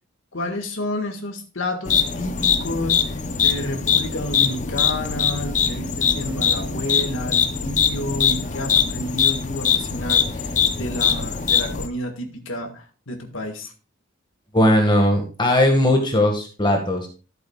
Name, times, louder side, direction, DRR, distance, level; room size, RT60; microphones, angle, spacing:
voice 1, 0.3-13.7, left 1 dB, 85° left, 4 dB, 1.7 m, -30 dB
sound 1, 1.9-11.9, left 7 dB, 40° left, 0.7 m, -22 dB
voice 2, 14.5-17.1, left 1 dB, 25° left, 2 dB, 1.7 m, -18 dB
14.0 x 7.8 x 2.4 m, 0.35 s
head